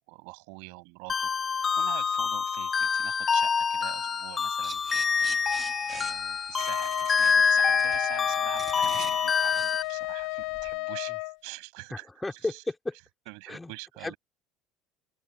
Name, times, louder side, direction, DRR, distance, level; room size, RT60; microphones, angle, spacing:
voice 1, 0.1-12.6 13.3-14.2, right 35 dB, 80° right, 6.5 m, -45 dB
sound 1, 1.1-9.8, left 6 dB, 30° left, 0.8 m, -26 dB
sound 2, 4.6-10.8, right 6 dB, 30° right, 1.9 m, -44 dB
Wind instrument woodwind instrument, 6.6-11.4, left 26 dB, 75° left, 0.5 m, -34 dB
voice 2, 11.9-13.0 13.5-13.7 14.0-14.1, left 2 dB, 10° left, 3.5 m, -33 dB
open air
supercardioid pair, 100°, 0 cm